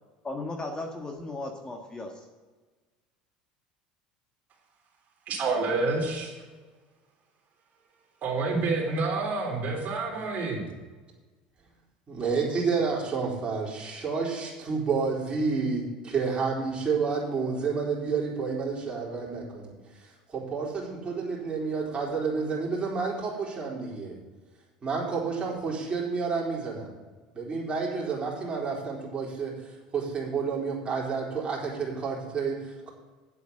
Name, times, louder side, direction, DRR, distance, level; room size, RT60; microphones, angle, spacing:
voice 1, 0.2-2.2, left 2 dB, 20° left, 2 dB, 1.6 m, -36 dB
voice 2, 5.3-6.3 8.2-10.6, right 3 dB, 45° right, -1 dB, 3.6 m, -28 dB
voice 3, 12.1-24.2 24.8-26.9 27.3-32.9, right 5 dB, 25° right, -3 dB, 4.1 m, -30 dB
9.4 x 8.1 x 5.5 m, 1.3 s
hypercardioid pair, 75°, 4 cm